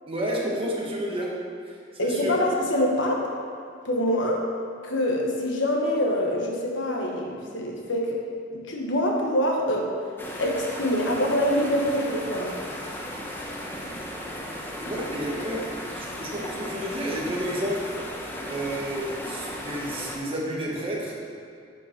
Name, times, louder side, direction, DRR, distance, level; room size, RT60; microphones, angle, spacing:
voice 1, 0.1-1.4 1.6-2.5 14.8-17.9 18.5-21.2, equal, 30° right, -3 dB, 1.3 m, -31 dB
voice 2, 2.0-3.2 3.8-4.5 4.8-8.2 8.5-9.9 10.4-12.6, left 1 dB, 80° left, 0 dB, 1.3 m, -25 dB
sound 1, 10.2-20.2, equal, 10° left, 0.8 m, -36 dB
10.5 x 5.3 x 4.4 m, 2.3 s
head